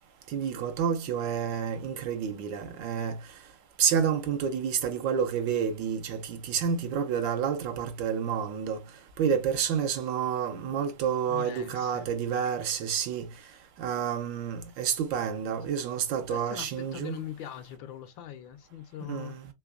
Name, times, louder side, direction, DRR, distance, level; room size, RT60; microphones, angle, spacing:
voice 1, 0.3-3.2 3.8-8.8 9.2-13.3 13.8-17.2 19.1-19.5, right 7 dB, 75° right, 1.4 m, -29 dB
voice 2, 11.3-12.1 16.3-19.4, left 11 dB, 75° left, 1.4 m, -41 dB
3.9 x 3.3 x 2.3 m
omnidirectional pair, 2.1 m